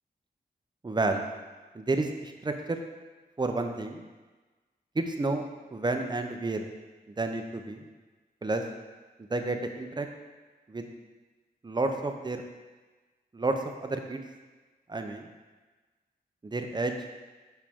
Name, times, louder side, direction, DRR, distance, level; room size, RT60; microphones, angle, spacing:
voice 1, 0.8-1.2 1.7-2.8 3.4-4.0 4.9-5.4 5.7-6.7 7.2-7.9 8.4-8.6 9.3-10.1 10.7-10.9 11.6-12.4 13.3-14.2 14.9-15.3 16.4-16.9, right 2 dB, 25° right, 5 dB, 0.6 m, -30 dB
5.7 x 4.9 x 3.6 m, 1.3 s
wide cardioid pair, 80°, 17 cm